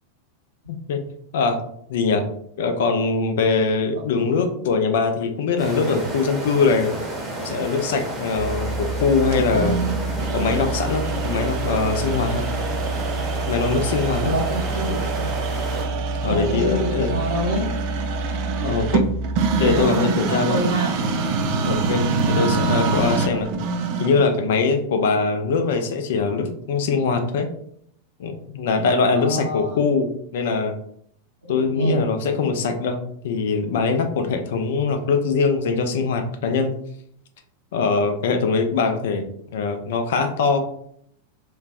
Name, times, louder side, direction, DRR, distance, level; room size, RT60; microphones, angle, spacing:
voice 1, 0.7-1.0 1.3-1.6 1.9-2.2 2.6-6.9 7.4-9.8 10.3-12.5 13.5-14.4 16.2-17.1 18.6-19.0 19.6-20.6 21.6-23.5 24.0-27.5 28.2-30.7 31.5-36.7 37.7-39.3 39.5-40.6, left 4 dB, 55° left, 6 dB, 0.4 m, -22 dB
sound 1, 5.6-15.9, right 2 dB, 15° right, 0.8 m, -31 dB
sound 2, 8.4-19.8, right 2 dB, 20° left, 0.9 m, -29 dB
sound 3, 9.3-24.3, right 4 dB, 45° right, 0.3 m, -26 dB
voice 2, 14.2-15.3 16.2-17.7 18.5-18.8 19.6-21.0 22.1-22.6 29.1-29.8 31.5-32.0, right 1 dB, 70° right, -6 dB, 0.7 m, -27 dB
3.2 x 2.1 x 2.4 m, 0.67 s
figure-of-eight pair, 90°, 0 cm